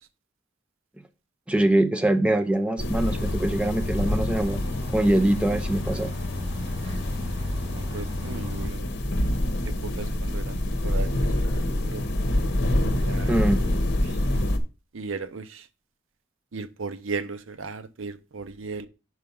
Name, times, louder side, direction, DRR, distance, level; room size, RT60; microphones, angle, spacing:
voice 1, 1.5-4.6 4.9-6.1 13.3-13.6, right 1 dB, 5° right, 0.7 m, -23 dB
sound 1, 2.8-14.6, left 1 dB, 60° left, 0.9 m, -27 dB
Bus, 3.0-8.7, left 2 dB, 30° right, 2.5 m, -33 dB
voice 2, 7.7-8.9 9.8-11.1 11.4-12.0 13.0-13.4 14.3-14.4 14.9-15.6 16.5-18.9, right 4 dB, 70° right, 0.7 m, -36 dB
5.8 x 4.9 x 5.4 m
head